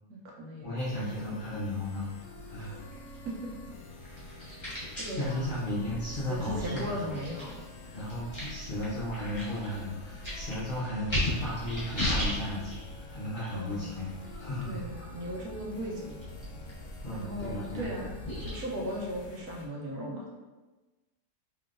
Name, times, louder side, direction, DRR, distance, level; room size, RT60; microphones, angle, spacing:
voice 1, 0.1-1.4 2.6-2.7 3.2-3.5 4.5-4.6 5.0-5.5 6.3-7.9 13.5-13.9 14.6-16.2 17.1-18.1 18.4-20.2, right 1 dB, 85° right, -2 dB, 1.3 m, -38 dB
voice 2, 0.6-2.1 2.5-2.8 5.1-7.2 7.9-15.1 17.0-18.1, left 1 dB, 40° left, -10 dB, 0.9 m, -35 dB
sound 1, 0.8-19.7, left 1 dB, 90° left, 1.1 m, -49 dB
sound 2, 2.4-19.3, left 1 dB, 20° left, 1.3 m, -38 dB
3.7 x 3.3 x 2.4 m, 1.2 s
omnidirectional pair, 1.6 m